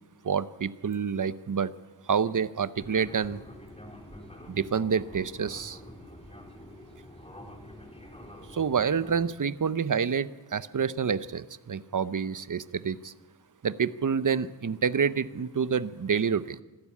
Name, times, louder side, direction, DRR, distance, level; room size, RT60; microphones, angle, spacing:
voice 1, 0.2-1.7 2.1-3.4 4.5-5.8 8.5-13.1 13.6-16.6, right 6 dB, 50° right, 16 dB, 0.8 m, -28 dB
Fixed-wing aircraft airplane, 2.7-9.3, left 1 dB, 15° left, 3.5 m, -47 dB
25.5 x 12.5 x 8.4 m, 1.1 s
wide cardioid pair, 70°, 40 cm